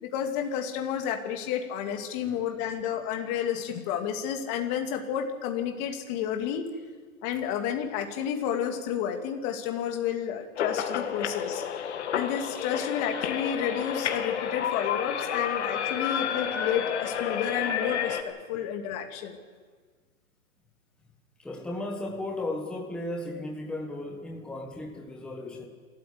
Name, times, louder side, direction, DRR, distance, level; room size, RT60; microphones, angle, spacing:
voice 1, 0.0-6.7 7.2-11.6 12.1-19.4, left 9 dB, 25° left, 4 dB, 2.6 m, -31 dB
sound 1, 10.6-18.2, left 8 dB, 50° left, 2.5 m, -30 dB
voice 2, 21.4-25.7, left 2 dB, ahead, 0 dB, 1.3 m, -35 dB
27.5 x 13.5 x 8.5 m, 1.5 s
hypercardioid pair, 155°, 42 cm